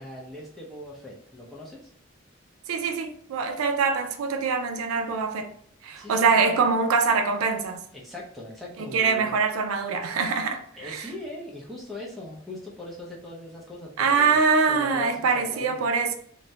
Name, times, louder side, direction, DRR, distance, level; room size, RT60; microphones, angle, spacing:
voice 1, 0.0-1.9 6.0-6.4 7.9-9.4 10.8-15.9, left 2 dB, ahead, 0.5 m, -40 dB
voice 2, 2.7-5.5 5.8-7.9 8.8-11.1 14.0-16.2, right 5 dB, 80° right, 0.4 m, -24 dB
2.3 x 2.0 x 2.7 m
head